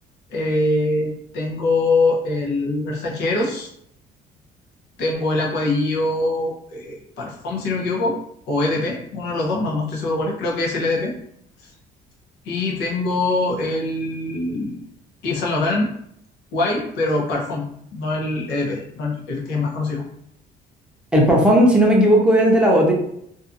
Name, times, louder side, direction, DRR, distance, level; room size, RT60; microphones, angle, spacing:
voice 1, 0.3-3.7 5.0-8.2 8.5-11.1 12.4-14.8 15.2-15.9 16.5-17.7 17.9-20.0, left 2 dB, 85° left, -2 dB, 0.8 m, -23 dB
voice 2, 21.1-22.9, equal, 5° right, -2 dB, 0.6 m, -15 dB
2.6 x 2.3 x 2.5 m, 0.72 s
cardioid pair, 110°, 17 cm